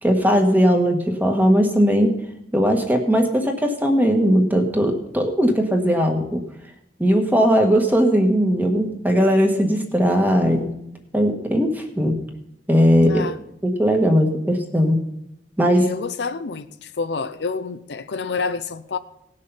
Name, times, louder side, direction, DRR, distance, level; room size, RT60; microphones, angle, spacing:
voice 1, 0.0-2.1 2.5-6.4 7.0-10.7 11.1-12.2 12.7-13.2 13.6-15.0 15.6-15.9, equal, 10° right, 1.5 m, -18 dB
voice 2, 13.1-13.4 15.8-19.0, left 4 dB, 70° left, 0.6 m, -28 dB
18.0 x 6.6 x 5.6 m
head